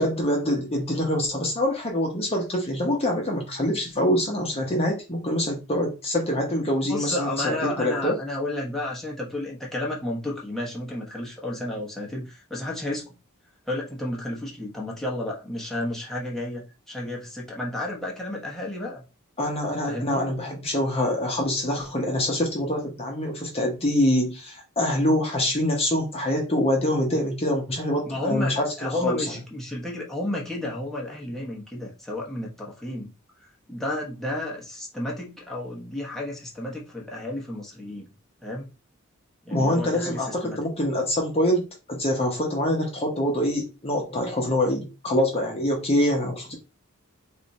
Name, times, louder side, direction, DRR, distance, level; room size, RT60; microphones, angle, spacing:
voice 1, 0.0-8.2 19.4-29.2 39.5-46.6, left 1 dB, 30° left, 0.9 m, -25 dB
voice 2, 6.8-13.0 13.7-19.0 19.9-20.3 28.1-33.1 33.7-38.1 38.4-38.7 39.4-40.6, left 1 dB, ahead, 1.0 m, -32 dB
3.3 x 2.6 x 4.1 m
head